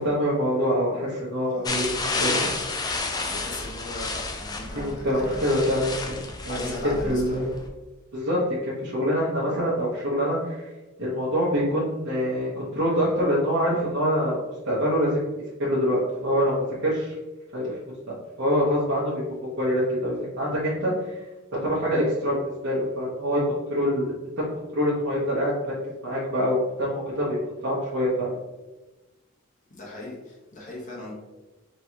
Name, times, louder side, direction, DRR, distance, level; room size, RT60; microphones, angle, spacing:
voice 1, 0.0-2.5 4.7-7.5 8.1-10.7 11.0-14.4 14.7-15.3 15.6-17.2 17.5-17.7 18.4-21.2 21.6-24.4 24.7-25.5 26.0-27.4 27.6-28.3, equal, 60° right, -8 dB, 1.0 m, -25 dB
sound 1, 1.6-7.7, left 3 dB, 20° left, 0.4 m, -31 dB
voice 2, 3.2-5.4 6.5-7.4 29.7-31.1, left 1 dB, 40° left, -3 dB, 1.1 m, -38 dB
4.3 x 3.1 x 2.8 m, 1.1 s
head